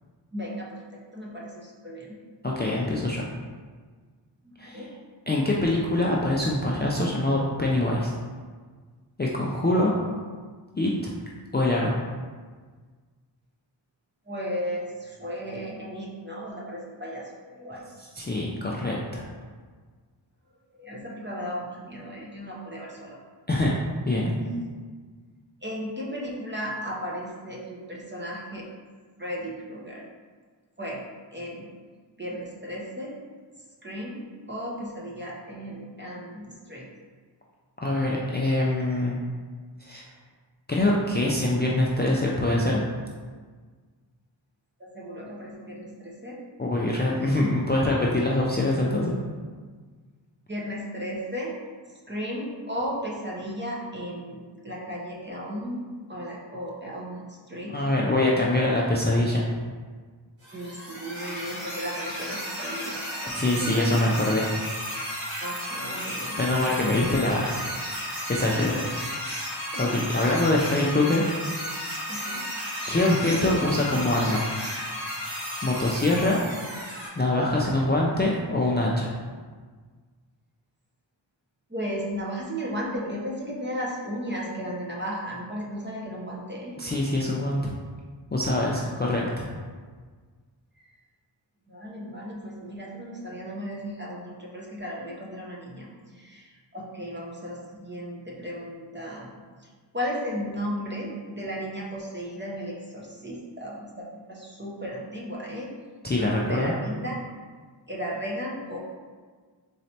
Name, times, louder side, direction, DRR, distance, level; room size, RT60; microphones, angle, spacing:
voice 1, 0.3-2.2 4.4-4.9 14.3-17.9 20.7-23.2 24.3-24.7 25.6-28.7 29.2-30.0 30.8-31.0 31.3-31.7 32.2-33.2 33.8-36.9 44.8-46.4 50.5-51.5 52.1-57.8 60.5-64.0 65.4-66.4 68.6-68.9 69.7-70.0 72.1-72.4 77.6-77.7 81.7-86.8 88.7-88.9 90.8-90.9 91.7-105.7 106.1-107.2 107.9-108.8, equal, 25° right, -4 dB, 0.8 m, -35 dB
voice 2, 2.4-3.2 4.6-4.8 5.3-8.1 9.2-9.9 10.8-11.1 11.5-12.0 18.1-19.2 23.5-23.7 24.0-24.4 37.8-39.2 39.8-40.0 40.7-42.8 46.6-49.2 57.7-59.5 63.3-64.5 66.4-67.6 67.9-68.8 69.8-71.3 72.9-74.5 75.6-76.4 77.2-79.1 86.8-87.7 88.3-89.5 106.0-106.7, left 1 dB, 25° left, -4 dB, 0.4 m, -24 dB
sound 1, 60.4-77.1, equal, 90° right, 1.5 m, -34 dB
4.0 x 3.2 x 2.8 m, 1.5 s
wide cardioid pair, 55°, 46 cm